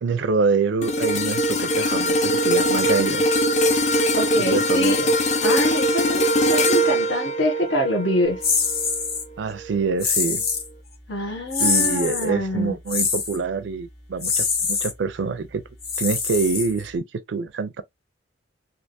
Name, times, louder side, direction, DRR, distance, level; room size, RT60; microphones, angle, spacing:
voice 1, 0.0-3.2 4.5-5.1 9.4-10.4 11.6-15.6 16.0-17.8, right 4 dB, 70° right, 0.4 m, -25 dB
sound 1, 0.8-9.2 9.6-9.8, equal, 40° left, 0.7 m, -22 dB
voice 2, 4.2-8.4 11.1-12.8, equal, 80° left, 1.3 m, -25 dB
sound 2, 8.4-9.2 10.0-10.7 11.5-12.3 12.9-13.4 14.2-14.9 15.8-17.0, left 5 dB, 55° left, 1.2 m, -24 dB
3.3 x 2.8 x 2.6 m
head